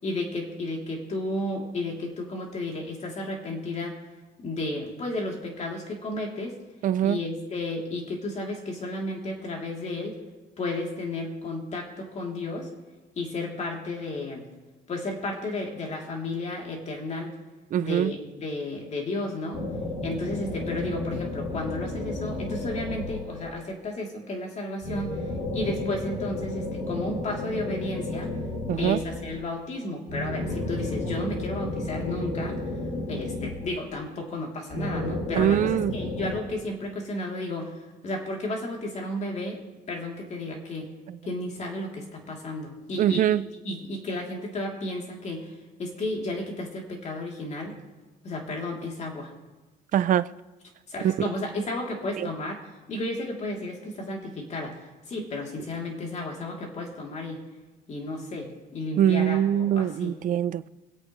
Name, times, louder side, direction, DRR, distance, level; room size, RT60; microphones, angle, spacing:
voice 1, 0.0-4.0 4.4-6.6 7.0-10.2 10.6-12.7 13.2-14.4 14.9-17.3 17.8-19.6 20.0-25.2 25.5-28.3 28.8-32.5 33.1-37.7 38.0-39.6 39.9-40.9 41.2-43.3 43.6-45.5 45.8-47.7 48.2-49.3 50.9-52.6 52.9-54.8 55.1-57.4 57.9-60.2, left 2 dB, 40° left, 3.1 m, -33 dB
voice 2, 6.8-7.2 17.7-18.1 28.7-29.0 35.4-36.0 43.0-43.4 49.9-50.3 51.0-51.1 52.2-52.3 59.0-60.7, right 10 dB, 50° right, 0.5 m, -23 dB
sound 1, 19.5-23.7 24.8-29.5 30.1-34.1 34.7-36.4, left 2 dB, 85° left, 4.5 m, -32 dB
25.5 x 8.5 x 3.2 m
cardioid pair, 110°, 17 cm